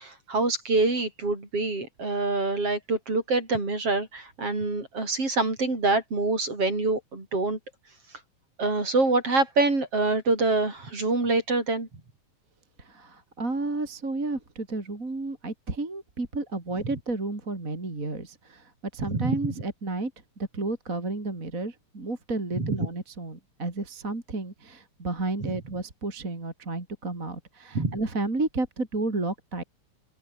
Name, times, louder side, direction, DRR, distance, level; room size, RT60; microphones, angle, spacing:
voice 1, 0.0-7.6 8.6-11.9 19.1-19.4 22.6-22.9 25.4-25.5 27.7-28.0, right 3 dB, 45° right, 7.4 m, -26 dB
voice 2, 12.8-20.1 20.5-29.6, right 2 dB, 25° right, 4.1 m, -32 dB
omnidirectional pair, 3.7 m